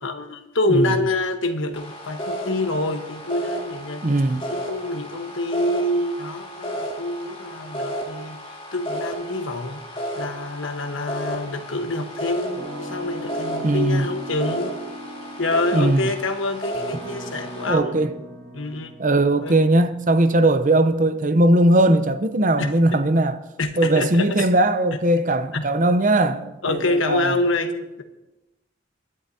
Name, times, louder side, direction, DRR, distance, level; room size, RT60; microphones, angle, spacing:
voice 1, 0.0-4.1 4.5-8.4 8.7-9.8 10.1-14.8 15.4-17.9 18.5-18.9 19.4-19.6 22.6-23.1 23.6-24.5 25.5-25.7 26.6-28.0, left 2 dB, 80° left, 1.3 m, -26 dB
sound 1, 1.7-17.7, equal, 25° left, 2.1 m, -33 dB
voice 2, 4.0-4.5 13.6-14.1 15.7-16.1 17.7-18.1 19.0-23.4 23.8-27.3, right 1 dB, 40° right, 0.8 m, -19 dB
sound 2, 12.6-21.8, equal, 70° right, 3.6 m, -39 dB
23.0 x 11.0 x 2.8 m
head